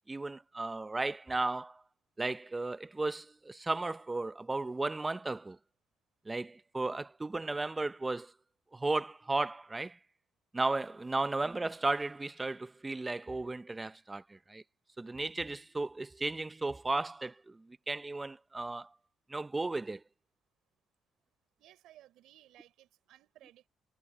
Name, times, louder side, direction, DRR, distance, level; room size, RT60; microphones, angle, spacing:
voice 1, 0.1-1.8 2.2-5.6 6.3-8.3 8.7-10.0 10.5-14.6 15.0-18.9 19.3-20.0, right 2 dB, 20° right, 0.6 m, -35 dB
voice 2, 21.6-23.7, right 14 dB, 85° right, 6.2 m, -59 dB
cardioid pair, 90°, 0 cm